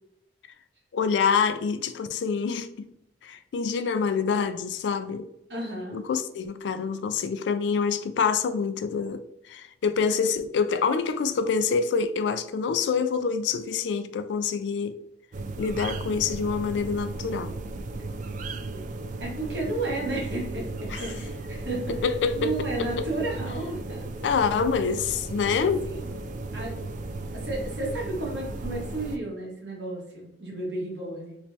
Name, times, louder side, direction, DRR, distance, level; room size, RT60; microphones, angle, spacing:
voice 1, 0.9-2.9 3.2-5.3 5.9-14.9 15.6-17.5 20.9-21.0 22.0-22.5 22.8-23.0 24.2-25.8, left 5 dB, 80° left, 0.3 m, -26 dB
voice 2, 5.5-6.0 19.2-22.0 22.3-24.1 25.5-26.1 26.5-26.7 27.3-31.4, right 2 dB, 70° right, 1.4 m, -33 dB
sound 1, 15.3-29.2, right 2 dB, 45° right, 0.3 m, -35 dB
3.3 x 3.0 x 2.7 m
head